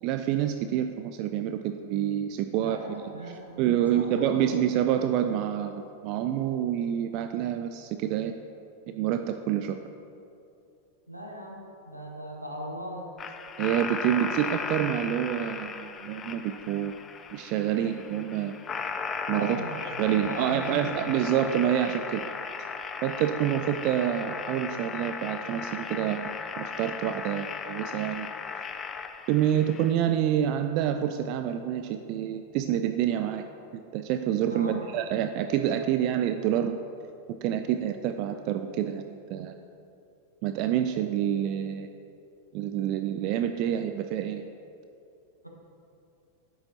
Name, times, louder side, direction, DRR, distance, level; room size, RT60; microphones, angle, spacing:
voice 1, 0.0-8.3 8.9-9.8 13.6-17.0 17.3-18.6 19.3-19.6 20.0-22.2 23.0-26.3 26.6-28.3 29.3-33.5 33.7-36.8 37.4-39.5 40.4-41.9 42.5-44.4, right 10 dB, 45° right, 7 dB, 0.3 m, -27 dB
voice 2, 2.5-4.5 11.1-11.6 11.9-13.1 19.4-21.0 34.5-34.9, equal, 90° right, -1 dB, 1.3 m, -38 dB
sound 1, 13.2-29.9, left 5 dB, 25° left, 0.4 m, -36 dB
10.5 x 7.7 x 2.8 m, 2.6 s
figure-of-eight pair, 90°, 0 cm